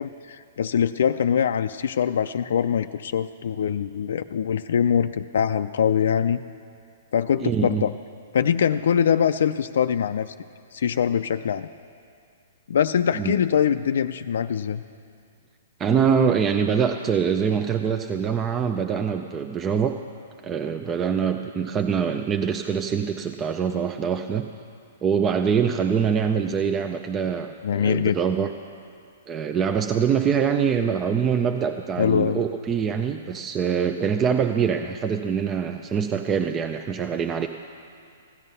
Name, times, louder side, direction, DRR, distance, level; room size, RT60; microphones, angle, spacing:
voice 1, 0.0-6.4 7.1-7.9 8.3-10.3 10.7-11.7 12.7-14.8 27.6-28.2 32.0-32.4, left 8 dB, 75° left, 9 dB, 0.4 m, -23 dB
voice 2, 7.4-7.9 13.1-13.4 15.8-20.0 20.4-24.5 25.0-28.5 29.3-37.5, right 7 dB, 20° right, 6 dB, 0.4 m, -24 dB
15.5 x 11.0 x 5.5 m, 2.4 s
hypercardioid pair, 145°, 0 cm